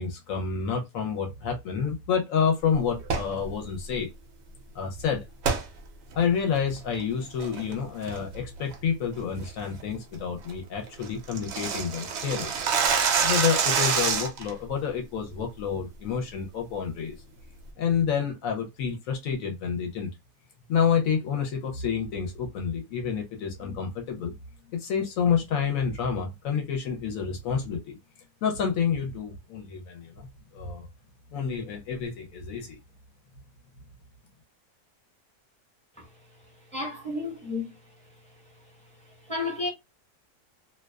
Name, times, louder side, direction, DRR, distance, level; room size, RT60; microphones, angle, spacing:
voice 1, 0.0-4.1 4.7-5.2 6.2-12.5 13.2-17.2 17.8-20.1 20.7-24.3 24.7-28.0 28.4-30.3 30.5-30.9 31.3-32.8, left 6 dB, 70° left, 0.9 m, -29 dB
sound 1, 3.0-3.3 5.4-5.6 6.1-6.2 6.8-7.0 7.4-7.7 8.1-8.4 8.7-8.8 9.2-9.4 9.8-9.9 10.2-10.3 10.5-10.6 10.9-14.5, right 6 dB, 70° right, 0.6 m, -26 dB
voice 2, 36.7-37.7 39.3-39.7, left 3 dB, 5° left, 0.7 m, -31 dB
2.5 x 2.2 x 2.2 m
omnidirectional pair, 1.6 m